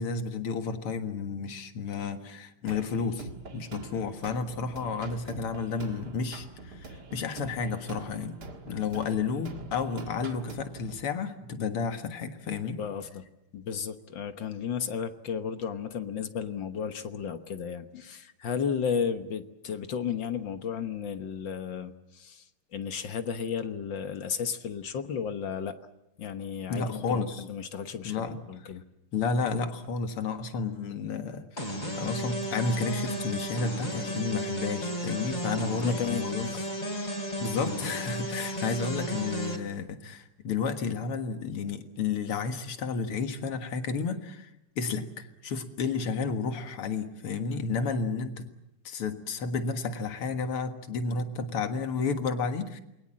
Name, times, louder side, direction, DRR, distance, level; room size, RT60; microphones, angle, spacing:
voice 1, 0.0-8.4 8.7-12.8 26.7-27.4 28.0-28.4 29.1-36.4 37.4-48.5 48.8-52.8, left 4 dB, 85° left, 8 dB, 2.6 m, -32 dB
sound 1, 2.7-11.0, right 3 dB, 50° right, 2.3 m, -44 dB
voice 2, 12.8-13.2 13.5-22.4 22.7-25.7 26.2-28.2 28.5-28.8 35.8-36.7 37.4-37.5, left 7 dB, 60° left, 9 dB, 1.9 m, -33 dB
sound 2, 31.6-39.6, equal, 20° left, 3.7 m, -34 dB
28.0 x 22.0 x 7.5 m, 0.88 s
omnidirectional pair, 2.4 m